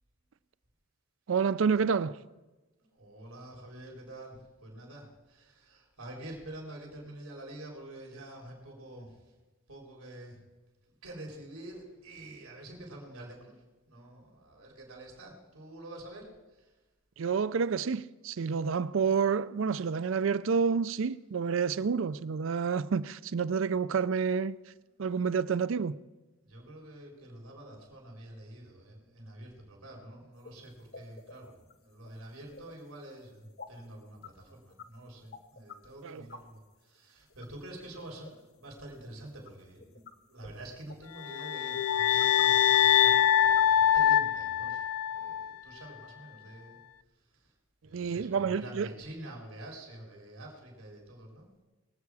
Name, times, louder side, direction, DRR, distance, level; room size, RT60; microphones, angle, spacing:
voice 1, 1.3-2.2 17.2-24.6 25.0-26.0 36.0-36.2 47.9-48.9, right 6 dB, 65° right, 0.4 m, -29 dB
voice 2, 2.9-9.2 9.7-10.4 11.0-13.6 13.9-16.7 21.8-21.9 26.4-40.0 40.3-46.8 47.4-47.5 47.8-51.6, right 1 dB, 90° right, 4.0 m, -47 dB
sound 1, 30.4-30.5 30.9-32.7 33.6-33.9 34.1-34.4 34.7-34.8 35.3-35.7 36.1-36.4 37.0-37.1 37.3-38.4 39.5-39.6 39.8-40.2 40.4-40.5 40.9-41.0 41.4-41.5 41.9-42.4 42.7-42.8 43.1-43.2 43.4-43.6, left 5 dB, 50° left, 1.0 m, -48 dB
sound 2, 41.2-45.5, left 10 dB, 75° left, 0.4 m, -24 dB
22.5 x 8.3 x 4.8 m
head